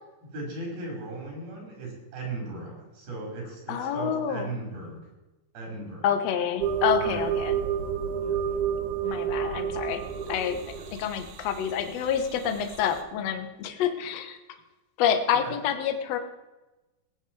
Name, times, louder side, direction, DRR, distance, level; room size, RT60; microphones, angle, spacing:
voice 1, 0.3-5.0 5.5-6.1 7.0-7.2 8.2-8.6 10.8-10.9 15.4-15.6, right 2 dB, 70° right, -1 dB, 6.7 m, -37 dB
voice 2, 3.7-4.5 6.0-7.5 9.0-10.0 10.3-10.6 11.0-14.4 15.0-16.2, left 8 dB, 60° left, 8 dB, 1.8 m, -27 dB
sound 1, 6.6-13.0, right 8 dB, 85° right, 3.1 m, -30 dB
19.5 x 9.5 x 4.7 m, 1.1 s
omnidirectional pair, 4.4 m